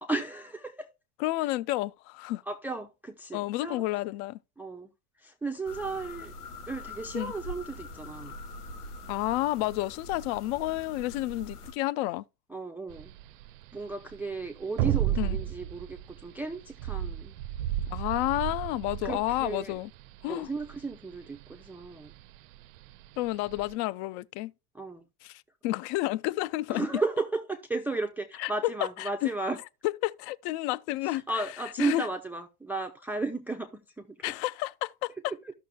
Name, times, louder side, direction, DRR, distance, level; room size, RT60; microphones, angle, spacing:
voice 1, 0.0-0.9 1.4-1.5 2.5-3.8 4.6-4.9 5.2-6.3 6.7-8.3 12.5-13.1 13.7-17.3 19.0-19.7 20.3-22.1 24.7-25.0 26.7-29.6 31.0-34.1 35.3-35.5, right 3 dB, 5° right, 0.5 m, -34 dB
voice 2, 1.2-2.4 3.3-4.4 7.1-7.3 9.1-12.2 15.2-15.4 17.9-19.9 20.2-20.5 23.2-24.5 25.2-26.9 28.4-29.3 29.8-31.2 31.8-32.1 34.2-35.3, left 17 dB, 50° left, 0.5 m, -30 dB
sound 1, 5.7-11.7, left 2 dB, 85° left, 1.2 m, -43 dB
sound 2, 12.9-23.7, right 12 dB, 60° right, 0.5 m, -33 dB
14.0 x 6.1 x 2.3 m
hypercardioid pair, 80°, 45 cm